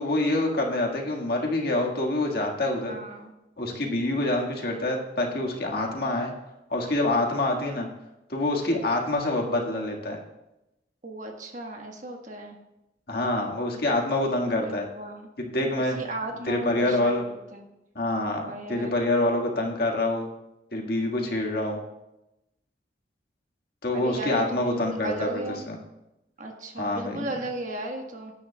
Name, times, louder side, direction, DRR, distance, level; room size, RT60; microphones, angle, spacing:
voice 1, 0.0-3.0 3.6-6.3 6.7-7.9 8.3-10.2 13.1-14.9 15.4-16.1 16.4-17.2 17.9-20.3 20.7-21.8 23.8-25.7 26.8-27.3, left 2 dB, 55° left, 0 dB, 1.8 m, -26 dB
voice 2, 2.9-3.3 11.0-12.6 14.5-15.3 16.0-17.6 18.3-19.0 23.9-25.6 26.4-28.3, right 1 dB, 40° right, 2 dB, 1.4 m, -36 dB
16.0 x 10.0 x 2.3 m, 0.93 s
head